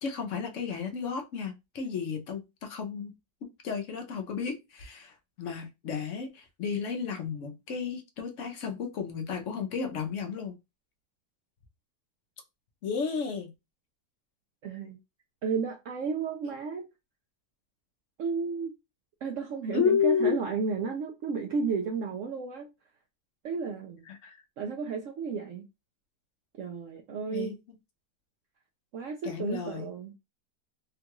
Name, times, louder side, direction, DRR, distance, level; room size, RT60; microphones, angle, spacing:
voice 1, 0.0-3.1 3.6-10.6 12.8-13.5 19.7-20.4 24.1-24.4 27.3-27.6 29.2-29.9, left 6 dB, 60° left, 0.8 m, -32 dB
voice 2, 14.6-15.0 15.4-16.8 18.2-18.7 19.2-22.7 23.4-24.0 24.6-25.6 26.6-27.6 28.9-30.1, right 5 dB, 80° right, 0.7 m, -33 dB
3.7 x 2.3 x 2.9 m
omnidirectional pair, 1.9 m